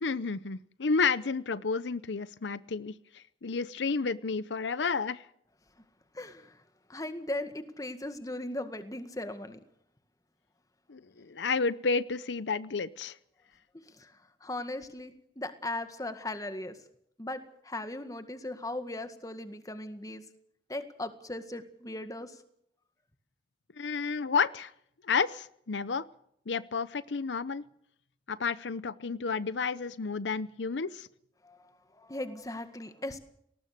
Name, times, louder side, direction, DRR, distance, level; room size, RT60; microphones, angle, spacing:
voice 1, 0.0-5.3 10.9-13.2 23.8-24.7 25.0-26.0 26.5-27.6 28.3-31.1, left 5 dB, 90° left, 17 dB, 0.7 m, -31 dB
voice 2, 6.1-6.6 6.9-9.6 13.7-16.8 17.2-20.2 20.7-22.4 31.4-33.2, left 1 dB, 20° left, 9 dB, 1.9 m, -38 dB
21.0 x 19.0 x 6.7 m, 0.71 s
head